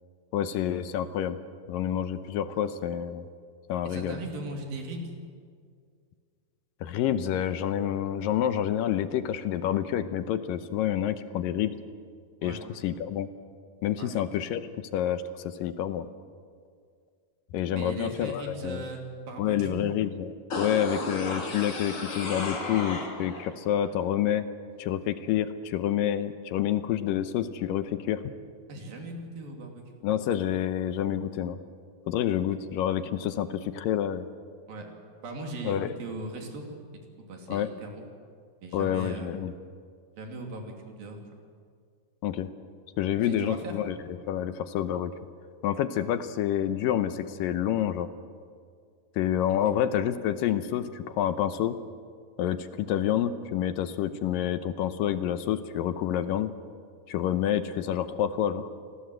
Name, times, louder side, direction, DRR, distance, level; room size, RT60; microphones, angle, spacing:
voice 1, 0.3-1.4 1.7-3.3 3.7-4.2 6.8-11.7 12.4-13.3 13.8-14.6 14.9-16.1 17.5-18.9 19.4-24.5 24.8-28.2 30.0-31.6 32.1-34.3 35.6-35.9 37.5-37.7 38.7-39.5 42.2-42.5 43.0-44.0 44.3-45.1 45.6-48.1 49.2-51.8 52.4-56.5 57.1-58.7, left 10 dB, 75° left, 11 dB, 2.3 m, -28 dB
voice 2, 3.8-5.1 12.4-12.6 14.0-14.2 17.7-19.9 28.7-30.0 34.7-34.9 35.2-36.7 37.2-38.1 38.6-39.4 40.2-41.3 43.2-43.7 49.7-49.8, right 2 dB, 65° right, 2 dB, 4.4 m, -38 dB
sound 1, 20.5-23.5 23.8-23.9, left 2 dB, 35° left, 3.7 m, -34 dB
27.5 x 20.0 x 7.8 m, 2.1 s
omnidirectional pair, 4.5 m